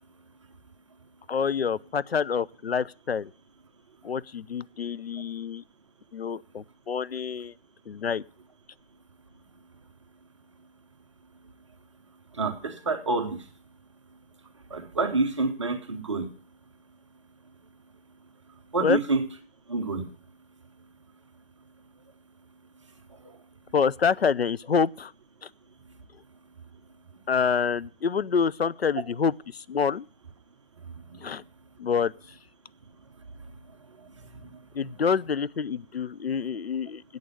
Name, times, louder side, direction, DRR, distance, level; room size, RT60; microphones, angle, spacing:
voice 1, 1.3-3.3 4.0-5.6 6.1-7.5 7.9-8.2 18.8-19.0 23.7-25.1 27.3-30.1 31.2-31.4 31.8-32.1 34.7-37.0, left 6 dB, 85° left, 0.5 m, -27 dB
voice 2, 12.3-13.4 14.7-16.3 18.7-19.2 19.7-20.0 23.2-23.4 31.1-31.3 34.3-34.6, right 3 dB, 30° right, 0.9 m, -28 dB
8.3 x 6.5 x 8.2 m
figure-of-eight pair, 150°, 30 cm